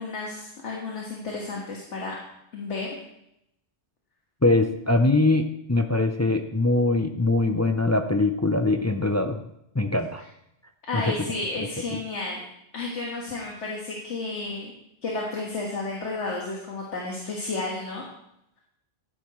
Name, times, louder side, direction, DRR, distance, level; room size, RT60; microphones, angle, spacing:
voice 1, 0.0-2.1 2.5-2.9 10.9-12.4 12.7-14.7 15.0-18.1, left 3 dB, 80° left, -2 dB, 1.9 m, -32 dB
voice 2, 4.4-9.4 9.7-10.2 10.9-11.2 11.9-12.0, left 2 dB, 20° left, 6 dB, 0.4 m, -22 dB
13.5 x 10.5 x 3.1 m, 0.78 s
omnidirectional pair, 1.2 m